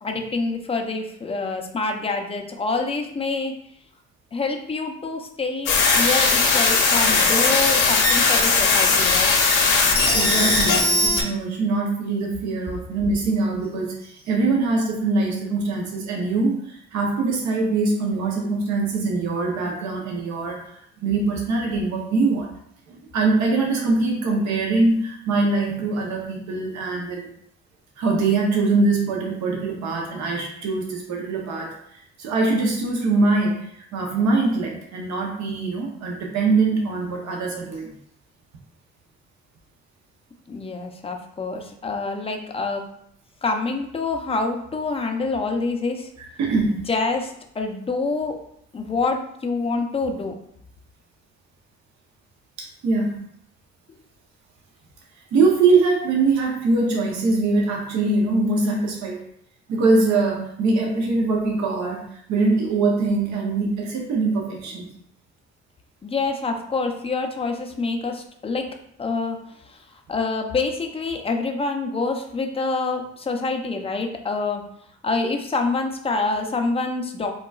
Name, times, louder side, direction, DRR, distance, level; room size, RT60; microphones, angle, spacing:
voice 1, 0.0-3.5 4.3-9.3 40.5-42.8 43.4-46.1 46.7-48.4 48.7-50.3 66.0-68.7 69.0-69.4 69.6-74.6 75.0-77.3, left 3 dB, 20° left, 3 dB, 0.4 m, -26 dB
sound 1, 5.7-11.2, left 4 dB, 80° left, 0.7 m, -18 dB
voice 2, 10.1-22.5 22.9-27.3 28.0-31.8 32.2-37.9 46.4-46.8 52.6-53.2 55.3-59.2 59.7-64.9, right 3 dB, 65° right, 0 dB, 0.7 m, -23 dB
3.8 x 2.2 x 2.3 m, 0.71 s
cardioid pair, 90°, 30 cm